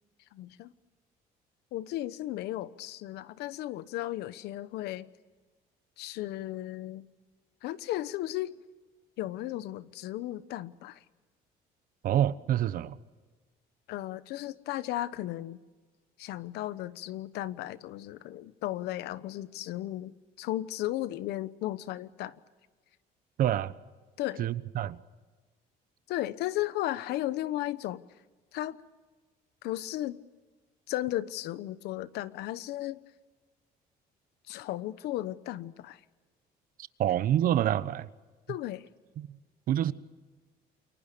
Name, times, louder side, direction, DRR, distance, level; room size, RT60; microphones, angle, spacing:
voice 1, 0.3-0.7 1.7-5.1 6.0-7.1 7.6-8.5 9.2-11.0 13.9-15.6 16.2-22.3 24.2-24.5 26.1-28.0 28.5-28.8 29.6-30.2 30.9-33.0 34.5-36.0 38.5-38.8, left 15 dB, 85° left, 1.1 m, -35 dB
voice 2, 12.0-13.0 23.4-23.7 24.4-25.0 37.0-38.1 39.2-39.3 39.7-39.9, right 11 dB, 60° right, 1.1 m, -27 dB
29.0 x 23.5 x 6.9 m
cardioid pair, 125°, 17 cm